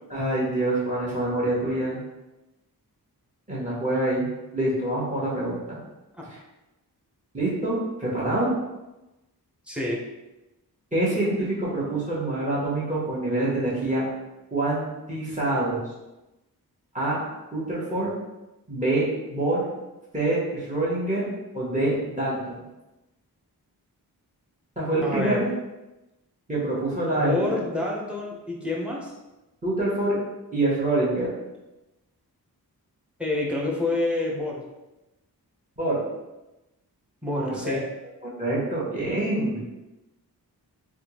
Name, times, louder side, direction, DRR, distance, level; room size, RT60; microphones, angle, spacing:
voice 1, 0.1-2.0 3.5-5.8 6.3-6.4 7.3-8.5 10.9-14.0 14.5-15.9 16.9-17.2 17.5-18.1 18.7-19.6 20.1-21.3 21.5-22.6 24.8-25.5 26.5-27.5 29.6-30.2 30.5-31.3 35.8-36.0 37.3-37.8 38.4-39.6, right 1 dB, 20° right, -6 dB, 1.3 m, -26 dB
voice 2, 9.7-10.0 25.0-25.4 27.2-29.1 33.2-34.6 37.2-37.9, left 2 dB, 5° right, -2 dB, 0.8 m, -28 dB
3.5 x 2.4 x 3.0 m, 1.0 s
wide cardioid pair, 70°, 38 cm